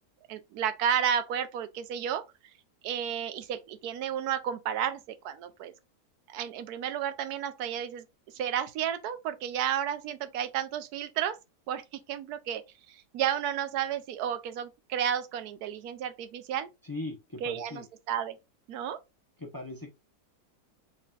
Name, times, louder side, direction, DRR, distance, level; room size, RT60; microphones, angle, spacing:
voice 1, 0.3-2.2 2.8-5.7 6.3-8.0 8.3-11.4 11.7-16.7 17.4-18.4 18.7-19.0, right 9 dB, 70° right, 1.1 m, -32 dB
voice 2, 16.8-17.9 19.4-19.9, left 2 dB, 25° left, 0.4 m, -39 dB
4.1 x 4.1 x 2.3 m
omnidirectional pair, 1.8 m